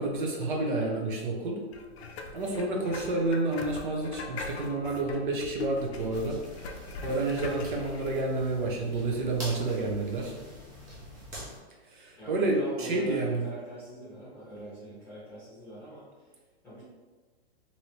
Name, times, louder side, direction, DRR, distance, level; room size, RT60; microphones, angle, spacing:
voice 1, 0.0-1.6 2.3-6.4 7.0-10.3 11.9-13.4, right 2 dB, 50° right, 0 dB, 0.7 m, -29 dB
sound 1, 1.7-8.2, left 4 dB, 70° left, 0.5 m, -41 dB
sound 2, 6.1-11.6, equal, 20° right, 0.4 m, -45 dB
voice 2, 12.2-16.1 16.6-16.8, right 1 dB, 10° left, -11 dB, 1.0 m, -42 dB
3.0 x 2.7 x 2.8 m, 1.3 s
hypercardioid pair, 170°, 32 cm